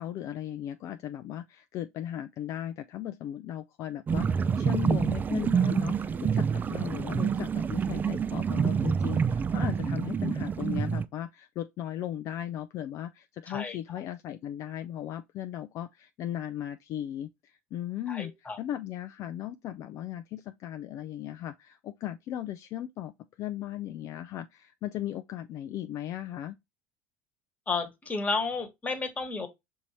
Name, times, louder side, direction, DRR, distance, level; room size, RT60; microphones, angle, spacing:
voice 1, 0.0-23.1 23.4-26.6, left 12 dB, 55° left, 0.4 m, -37 dB
sound 1, 4.1-11.1, right 6 dB, 30° right, 0.4 m, -27 dB
voice 2, 18.1-18.6 27.7-29.5, left 4 dB, 25° left, 1.4 m, -32 dB
5.6 x 2.7 x 3.0 m
supercardioid pair, 90°, 6 cm